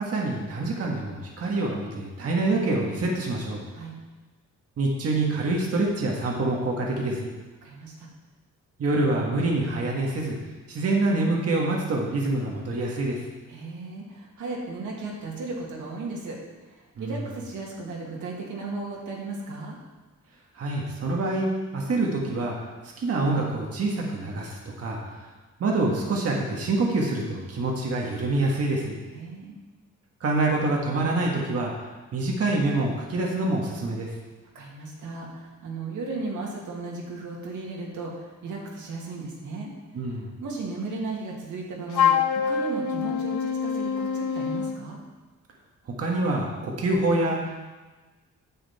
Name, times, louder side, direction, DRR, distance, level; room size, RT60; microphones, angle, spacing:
voice 1, 0.0-3.6 4.8-7.3 8.8-10.3 10.7-13.2 17.0-17.2 20.5-22.5 23.0-25.3 25.6-29.0 30.2-31.7 32.1-34.1 39.9-40.3 46.0-47.4, right 2 dB, 50° right, -1 dB, 1.7 m, -26 dB
voice 2, 7.6-8.1 13.5-16.4 16.7-19.8 29.1-29.6 34.5-39.7 40.4-45.0, right 3 dB, 80° right, -2 dB, 2.3 m, -35 dB
Wind instrument woodwind instrument, 41.9-44.8, left 7 dB, 80° left, 0.7 m, -25 dB
10.0 x 7.8 x 4.3 m, 1.2 s
wide cardioid pair, 150°, 30 cm